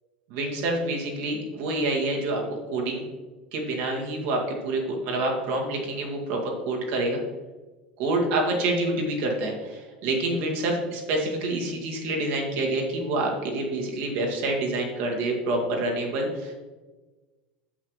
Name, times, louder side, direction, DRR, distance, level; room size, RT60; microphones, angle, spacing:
voice 1, 0.3-3.0 3.5-7.2 8.0-16.5, right 2 dB, 55° right, 0 dB, 1.9 m, -27 dB
8.5 x 7.5 x 3.2 m, 1.2 s
figure-of-eight pair, 75°, 5 cm